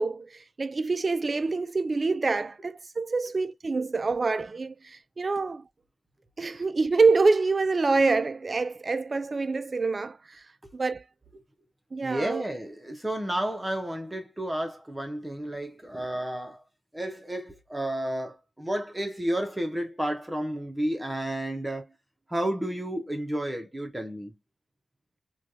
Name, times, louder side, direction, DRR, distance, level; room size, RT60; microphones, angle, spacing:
voice 1, 0.0-5.6 6.4-10.4 10.7-11.0 11.9-12.4, right 3 dB, 40° right, 0.4 m, -26 dB
voice 2, 12.0-16.6 16.9-21.9 22.3-24.3, right 1 dB, 15° right, 0.8 m, -31 dB
3.2 x 2.3 x 2.6 m
cardioid pair, 70°, 0 cm